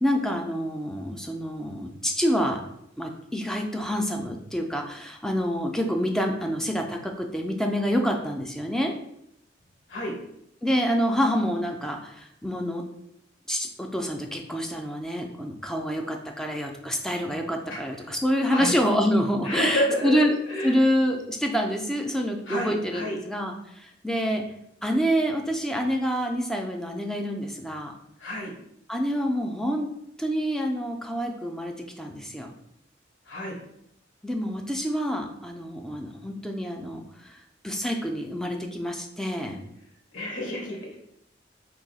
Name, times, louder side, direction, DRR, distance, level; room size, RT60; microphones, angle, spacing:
voice 1, 0.0-2.6 3.0-8.9 10.6-12.8 13.5-20.3 20.6-24.4 24.8-27.9 28.9-29.9 30.2-32.5 34.2-37.4 37.6-39.6, equal, 5° left, 2 dB, 0.3 m, -27 dB
voice 2, 19.5-20.8 22.5-23.2 28.2-28.5 33.3-33.6 40.1-41.0, equal, 85° left, -1 dB, 1.0 m, -29 dB
2.7 x 2.3 x 3.9 m, 0.76 s
head